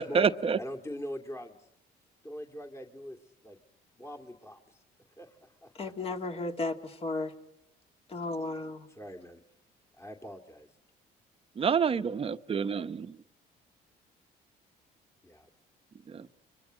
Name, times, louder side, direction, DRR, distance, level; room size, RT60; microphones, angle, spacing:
voice 1, 0.0-0.6 11.6-13.2 16.1-16.3, right 6 dB, 35° right, 1.0 m, -28 dB
voice 2, 0.6-1.7 2.2-3.2 3.4-3.6 4.0-4.8 5.2-6.1 8.9-9.4 10.0-10.7 15.2-15.5, equal, 15° left, 2.4 m, -43 dB
voice 3, 5.7-7.3 8.1-8.9, left 2 dB, 35° left, 2.7 m, -34 dB
30.0 x 24.0 x 6.3 m
cardioid pair, 110°, 17 cm